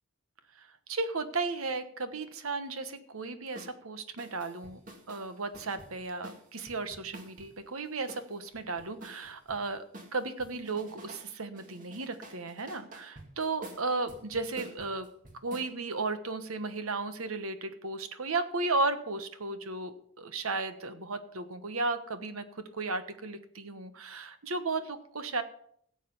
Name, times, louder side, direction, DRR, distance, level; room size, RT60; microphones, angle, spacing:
voice 1, 0.5-4.8 5.1-9.8 10.1-15.1 15.4-25.4, right 3 dB, 75° right, 10 dB, 1.2 m, -35 dB
sound 1, 3.6-3.8 4.2-7.5 8.1-9.6 9.9-11.3 11.5-15.7, right 2 dB, 40° right, 2.1 m, -49 dB
16.0 x 7.5 x 5.6 m, 0.65 s
head